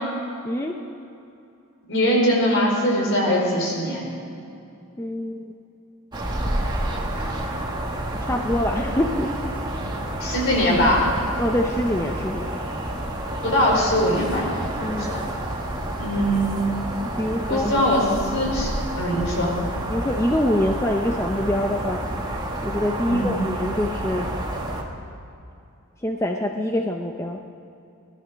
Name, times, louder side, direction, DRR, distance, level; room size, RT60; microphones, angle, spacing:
voice 1, 0.4-0.8 5.0-5.5 8.1-9.6 11.4-12.6 14.8-15.2 17.0-17.7 19.9-22.1 22.6-24.4 26.0-27.4, left 1 dB, 15° left, 2 dB, 0.6 m, -25 dB
voice 2, 1.9-4.1 10.2-11.1 13.4-14.5 14.8-15.2 16.0-16.5 17.5-18.0 18.3-18.7 19.0-19.6 23.1-23.3, equal, 60° left, -2 dB, 4.6 m, -21 dB
sound 1, 6.1-24.8, right 1 dB, 20° right, 1.6 m, -29 dB
19.0 x 12.0 x 6.3 m, 2.7 s
head